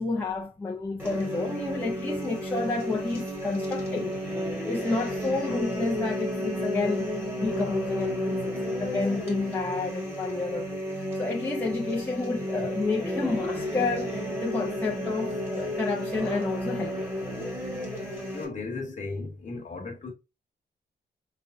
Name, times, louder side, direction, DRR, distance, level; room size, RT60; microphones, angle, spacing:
voice 1, 0.0-4.1 4.5-7.1 7.3-10.8 11.2-17.1, left 3 dB, 10° left, 0.6 m, -30 dB
sound 1, 1.0-18.4, equal, 10° right, 1.6 m, -32 dB
voice 2, 18.3-20.1, left 3 dB, 40° left, 1.2 m, -35 dB
5.1 x 3.3 x 2.6 m
wide cardioid pair, 160°, 19 cm